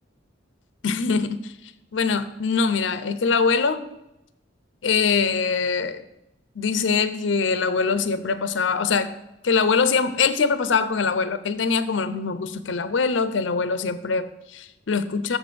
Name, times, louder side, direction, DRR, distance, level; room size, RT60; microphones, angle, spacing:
voice 1, 0.8-1.5 1.9-3.8 4.8-6.0 6.6-9.1 9.4-15.4, left 5 dB, 80° left, 12 dB, 0.6 m, -23 dB
6.9 x 5.1 x 6.8 m, 0.90 s
head